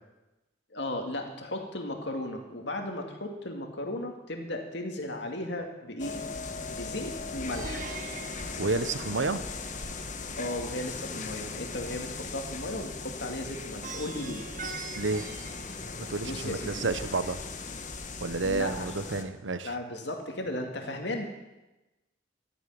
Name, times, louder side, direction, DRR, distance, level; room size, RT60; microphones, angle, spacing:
voice 1, 0.7-6.2 6.7-7.9 10.4-14.4 16.2-16.9 18.4-19.2 19.6-21.3, left 1 dB, 65° left, 3 dB, 2.4 m, -36 dB
sound 1, 6.0-19.2, left 4 dB, 45° left, 1.3 m, -38 dB
Plucked string instrument, 7.5-9.7 13.8-16.4, right 4 dB, 45° right, 1.3 m, -43 dB
voice 2, 8.6-9.4 14.9-15.3 16.0-17.4 18.2-19.7, right 3 dB, 90° right, 12 dB, 1.0 m, -30 dB
13.0 x 10.0 x 9.4 m, 1.0 s
head